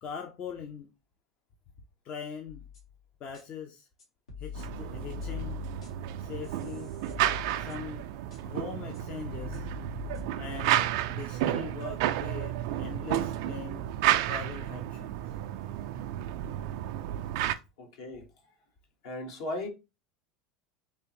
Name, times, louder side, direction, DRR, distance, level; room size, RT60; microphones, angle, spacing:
voice 1, 0.0-0.9 2.0-2.6 3.2-3.9 4.4-5.6 6.2-6.9 7.5-8.0 8.4-9.7 10.4-13.9 14.2-15.2, left 7 dB, 45° left, 0.6 m, -41 dB
sound 1, 2.5-2.9 3.3-3.4 4.0-6.2 6.4-8.0 8.3-8.4 8.9-9.0 9.3-10.7, left 7 dB, 85° left, 1.4 m, -42 dB
sound 2, 4.5-17.5, right 12 dB, 65° right, 0.3 m, -32 dB
voice 2, 17.8-18.5 19.0-19.7, left 2 dB, 70° left, 1.2 m, -38 dB
3.4 x 3.1 x 2.9 m
hypercardioid pair, 80°, 3 cm